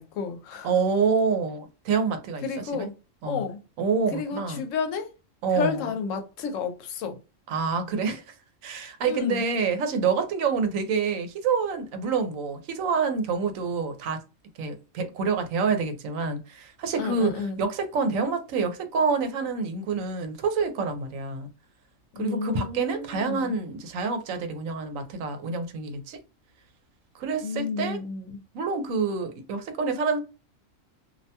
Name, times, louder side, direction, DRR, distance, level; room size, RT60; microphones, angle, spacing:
voice 1, 0.0-0.7 2.4-2.9 3.3-3.6 4.1-5.1 5.5-7.2 9.0-9.4 17.0-17.6 22.1-23.5 27.4-28.4, left 5 dB, 75° left, 0.9 m, -31 dB
voice 2, 0.6-2.4 2.7-2.9 3.2-3.4 3.8-4.6 5.4-5.9 7.5-8.4 8.6-14.2 14.6-21.5 22.2-26.2 27.1-28.0 28.5-30.2, right 5 dB, 85° right, 1.0 m, -27 dB
2.5 x 2.2 x 2.7 m
omnidirectional pair, 1.4 m